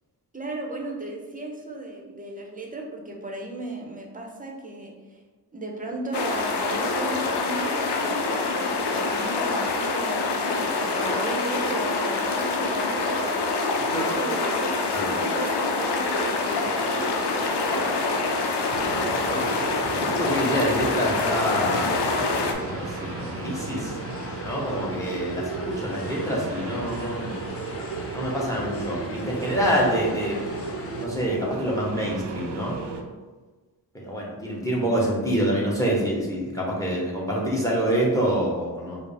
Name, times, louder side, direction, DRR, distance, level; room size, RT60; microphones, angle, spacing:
voice 1, 0.3-5.2 5.5-10.4 10.8-13.5 13.9-19.5, right 2 dB, 20° right, 0 dB, 0.7 m, -36 dB
sound 1, 6.1-22.5, left 3 dB, 80° left, 0.6 m, -26 dB
sound 2, 16.4-31.1, left 3 dB, 35° left, 0.5 m, -39 dB
sound 3, 18.7-33.0, right 4 dB, 85° right, 0.6 m, -35 dB
voice 2, 20.0-22.0 22.2-23.9 24.4-27.5 28.1-30.4 31.0-32.8 33.9-39.0, equal, 10° left, -3 dB, 1.1 m, -26 dB
4.8 x 2.1 x 3.4 m, 1.3 s
cardioid pair, 75°, 40 cm